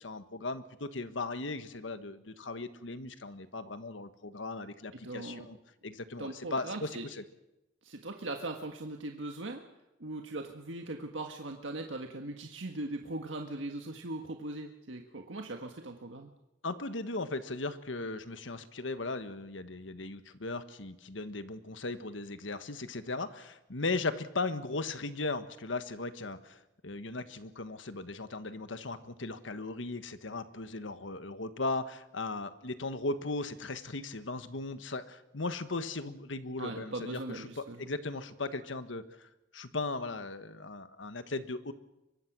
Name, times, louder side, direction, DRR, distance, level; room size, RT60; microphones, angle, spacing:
voice 1, 0.0-5.6 5.8-7.2 16.6-39.0 39.5-41.7, left 3 dB, 80° left, 11 dB, 1.4 m, -37 dB
voice 2, 4.9-5.4 6.2-7.0 7.8-9.6 10.0-16.3 36.6-37.9, right 2 dB, 85° right, 3 dB, 1.6 m, -40 dB
24.0 x 22.5 x 6.2 m, 0.95 s
head